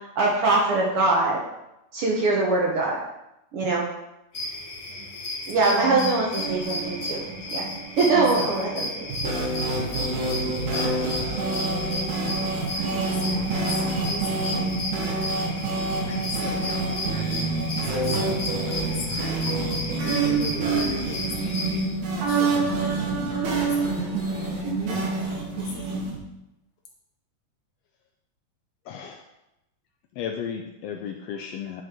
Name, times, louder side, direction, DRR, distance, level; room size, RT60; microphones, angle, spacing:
voice 1, 0.2-1.4 1.9-3.0 3.5-3.8 5.5-7.2 7.5-7.6 8.0-8.9, right 3 dB, 65° right, -2 dB, 1.5 m, -22 dB
sound 1, 4.3-21.8, left 2 dB, 30° left, 1.3 m, -34 dB
voice 2, 5.8-6.1 7.5-7.7 8.0-8.5 12.5-14.8 16.0-19.6 20.0-26.0, equal, 50° left, 0 dB, 1.6 m, -36 dB
sound 2, 6.4-26.2, right 3 dB, 85° right, 2.9 m, -27 dB
voice 3, 28.9-29.2 30.2-31.8, left 7 dB, 80° left, 4 dB, 1.5 m, -34 dB
9.2 x 5.0 x 3.7 m, 0.89 s
omnidirectional pair, 3.4 m